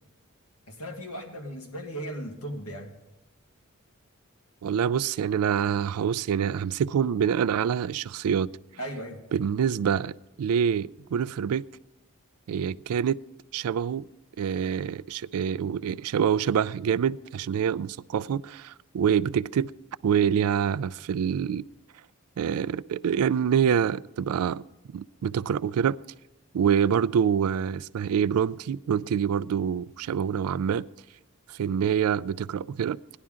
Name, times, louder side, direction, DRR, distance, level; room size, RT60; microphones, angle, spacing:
voice 1, 0.7-2.9 8.8-9.2, right 1 dB, 85° left, 1.7 m, -37 dB
voice 2, 4.6-8.5 9.3-11.6 12.5-13.2 13.5-14.0 14.4-19.7 20.0-21.6 22.4-24.6 24.9-26.0 26.5-30.9 31.5-33.0, right 8 dB, 80° right, 0.3 m, -26 dB
17.5 x 10.5 x 3.7 m
head